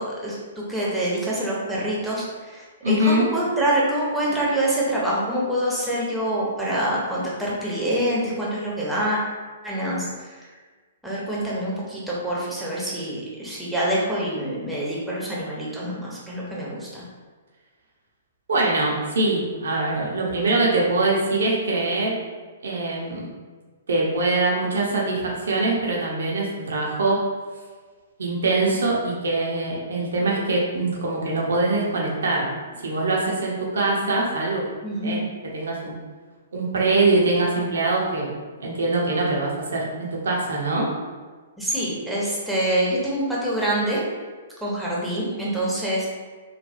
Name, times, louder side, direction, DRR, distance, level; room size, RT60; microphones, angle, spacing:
voice 1, 0.0-9.2 9.6-10.5 11.0-17.0 34.8-35.3 41.6-44.0 44.6-46.1, right 1 dB, 5° right, -6 dB, 0.8 m, -26 dB
voice 2, 2.8-3.3 18.5-22.1 22.6-23.3 23.9-27.2 28.2-34.6 35.0-35.2 35.5-36.0 36.5-38.3 38.6-40.9, right 2 dB, 65° right, -3 dB, 0.6 m, -23 dB
3.1 x 2.2 x 2.6 m, 1.4 s
figure-of-eight pair, 115°, 0 cm